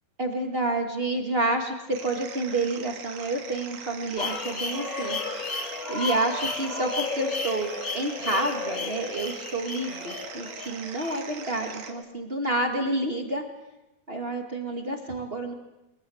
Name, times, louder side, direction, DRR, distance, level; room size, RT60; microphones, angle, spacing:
voice 1, 0.2-5.2 5.9-7.7 7.9-13.4 14.1-15.5, right 2 dB, 30° right, 3 dB, 1.0 m, -29 dB
sound 1, 1.9-11.9, right 7 dB, 65° right, 3.5 m, -42 dB
sound 2, 4.2-12.0, left 3 dB, 35° left, 1.5 m, -33 dB
23.0 x 20.5 x 7.8 m, 0.96 s
omnidirectional pair, 4.4 m